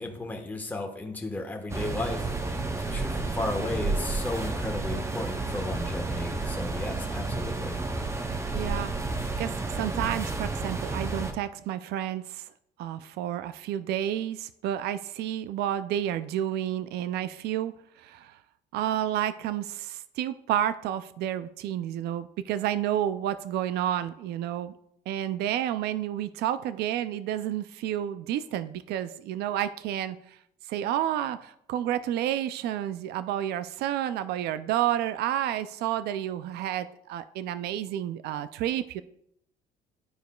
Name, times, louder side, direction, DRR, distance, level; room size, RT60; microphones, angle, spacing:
voice 1, 0.0-2.2 2.7-7.8, left 2 dB, 10° left, 2 dB, 1.2 m, -34 dB
sound 1, 1.7-11.3, right 3 dB, 15° right, 0.6 m, -31 dB
voice 2, 8.5-8.9 9.4-12.5 12.8-18.4 18.7-24.8 25.1-30.4 30.7-39.0, right 11 dB, 75° right, 13 dB, 0.4 m, -30 dB
11.5 x 4.9 x 2.3 m, 0.72 s
cardioid pair, 110°, 17 cm